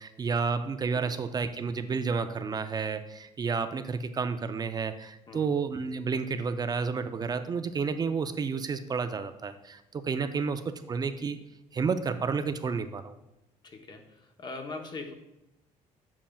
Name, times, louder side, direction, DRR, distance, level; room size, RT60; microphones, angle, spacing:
voice 1, 0.0-11.4 11.7-13.1, right 5 dB, 30° right, 9 dB, 0.4 m, -31 dB
voice 2, 13.6-15.1, left 3 dB, 35° left, 5 dB, 0.9 m, -41 dB
7.3 x 7.2 x 2.3 m, 0.89 s
cardioid pair, 115°, 14 cm